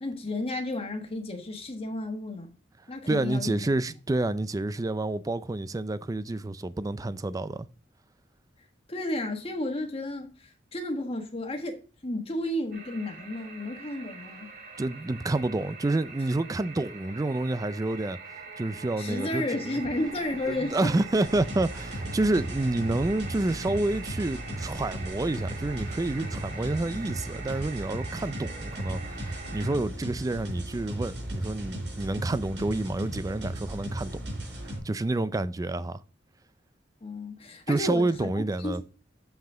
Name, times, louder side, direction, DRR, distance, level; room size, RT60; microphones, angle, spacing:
voice 1, 0.0-2.5 2.9-3.6 8.9-14.5 19.0-20.9 37.0-38.8, left 1 dB, 30° left, 1.4 m, -33 dB
voice 2, 3.1-7.7 14.8-18.2 18.6-19.8 20.5-34.1 34.6-36.0 37.7-38.8, right 2 dB, 20° right, 0.4 m, -29 dB
sound 1, 12.7-29.7, right 4 dB, 55° right, 3.0 m, -44 dB
sound 2, 20.0-26.9, right 1 dB, 85° right, 4.0 m, -50 dB
sound 3, 21.2-34.8, right 1 dB, 70° right, 4.2 m, -36 dB
7.6 x 5.8 x 3.7 m
head